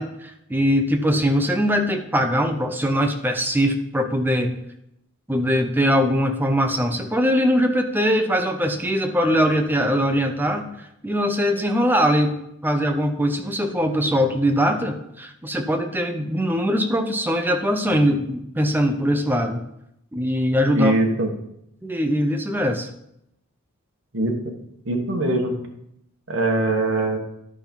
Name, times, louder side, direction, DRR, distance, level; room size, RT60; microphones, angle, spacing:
voice 1, 0.0-4.5 5.3-10.7 11.0-12.4 12.6-19.6 20.1-20.9 21.8-22.9, equal, 10° right, 6 dB, 0.6 m, -21 dB
voice 2, 20.7-21.3 24.1-24.3 24.9-25.5 26.3-27.2, right 2 dB, 60° right, 2 dB, 1.4 m, -21 dB
11.0 x 5.4 x 4.5 m, 0.79 s
head